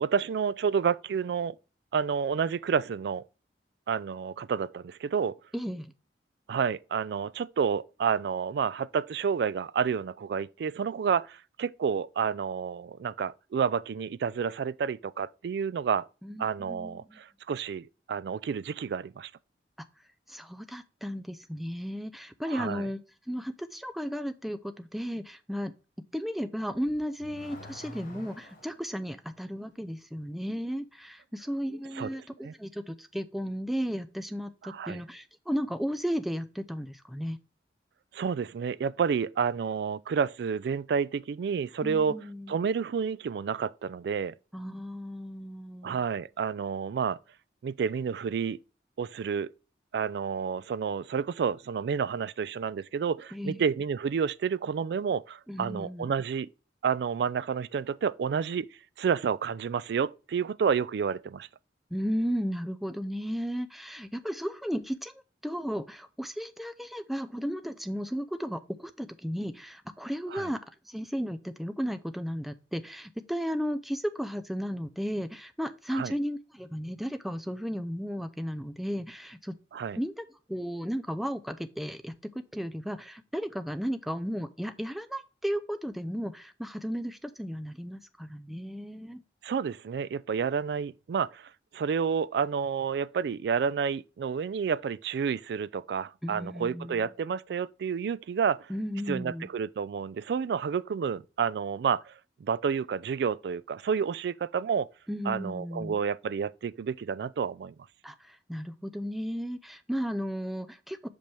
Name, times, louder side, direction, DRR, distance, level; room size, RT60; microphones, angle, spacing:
voice 1, 0.0-1.6 1.9-3.2 3.9-5.4 6.5-16.1 16.4-19.3 22.5-22.9 32.0-32.1 32.4-32.5 34.6-35.0 38.1-42.2 42.5-44.3 45.8-47.2 47.6-48.6 49.0-49.5 49.9-56.5 56.8-58.7 59.0-61.5 70.3-70.5 75.9-76.1 79.7-80.0 89.4-98.7 99.1-102.1 102.4-104.9 105.3-107.7, right 6 dB, 70° right, 0.3 m, -30 dB
voice 2, 5.5-5.9 16.2-17.2 20.3-23.0 23.3-25.7 26.1-37.4 41.8-42.5 44.5-46.0 53.3-53.6 55.5-56.1 61.9-65.1 65.4-79.6 80.0-89.2 96.2-97.1 98.7-99.5 105.1-106.0 108.0-111.1, equal, ahead, 0.4 m, -34 dB
Car / Accelerating revving vroom, 26.7-28.9, left 2 dB, 45° left, 1.9 m, -47 dB
5.9 x 5.2 x 3.3 m
head